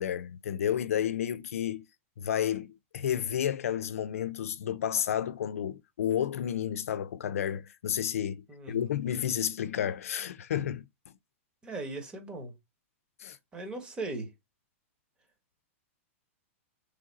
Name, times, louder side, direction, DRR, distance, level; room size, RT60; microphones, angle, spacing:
voice 1, 0.0-1.8 2.2-11.1 13.2-13.4, left 9 dB, 85° left, 0.5 m, -31 dB
voice 2, 8.5-9.0 11.6-12.5 13.5-14.3, right 2 dB, 15° right, 1.2 m, -38 dB
3.8 x 3.4 x 4.0 m
hypercardioid pair, 155°, 7 cm